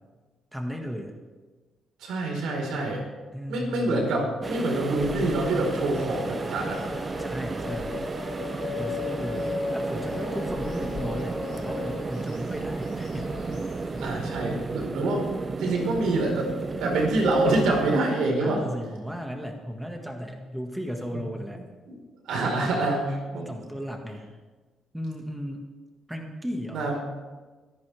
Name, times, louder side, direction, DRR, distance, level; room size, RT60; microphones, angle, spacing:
voice 1, 0.5-1.2 3.3-4.3 7.2-8.0 8.8-14.1 18.4-21.6 23.3-24.3 24.9-25.6 26.1-26.9, equal, 5° right, 2 dB, 1.9 m, -35 dB
voice 2, 2.0-3.0 3.5-6.8 14.0-15.2 15.6-16.5 16.8-18.6 21.1-21.2 21.9-22.0 22.3-23.5 26.7-27.0, right 2 dB, 85° right, 0 dB, 4.5 m, -26 dB
sound 1, 4.4-18.0, right 4 dB, 35° right, 0.6 m, -33 dB
sound 2, 5.0-14.1, left 5 dB, 60° left, 1.8 m, -37 dB
25.0 x 10.5 x 3.5 m, 1.3 s
cardioid pair, 90°, 0 cm